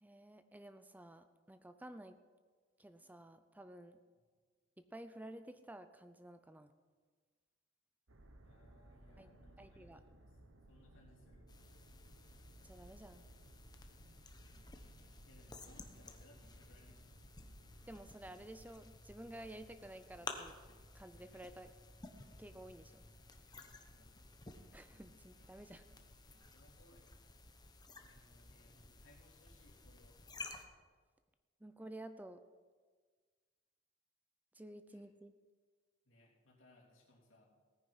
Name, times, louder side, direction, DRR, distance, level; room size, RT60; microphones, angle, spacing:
voice 1, 0.0-2.2 2.8-4.0 4.8-6.7 9.2-9.3 9.6-10.0 12.6-13.3 17.9-20.5 20.9-21.7 22.4-23.0 24.7-25.8 31.6-32.4 34.5-35.3, right 1 dB, 10° right, 10 dB, 0.4 m, -52 dB
sound 1, 8.1-18.0, right 1 dB, 80° right, 1.3 m, -61 dB
voice 2, 8.4-10.4 10.7-11.5 15.2-17.1 23.5-24.3 26.5-27.3 28.0-30.2 34.9-35.0 36.0-37.4, left 1 dB, 70° left, -3 dB, 3.2 m, -67 dB
sound 2, 11.5-30.6, left 3 dB, 20° left, 1.0 m, -54 dB
sound 3, 13.7-26.7, equal, 50° right, 2.0 m, -67 dB
17.0 x 9.7 x 5.6 m, 1.5 s
head